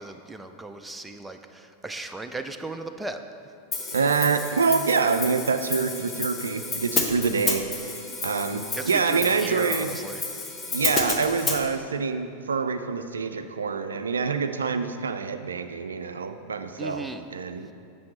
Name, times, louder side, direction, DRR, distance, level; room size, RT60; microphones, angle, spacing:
voice 1, 0.0-3.2 8.7-10.6 16.8-17.3, right 2 dB, 5° right, 7 dB, 0.4 m, -37 dB
Hi-hat, 3.7-11.6, left 4 dB, 20° left, 0.9 m, -31 dB
voice 2, 3.9-10.0 10.7-17.7, right 5 dB, 70° right, 9 dB, 0.3 m, -26 dB
7.7 x 6.7 x 4.2 m, 2.4 s
figure-of-eight pair, 90°, 0 cm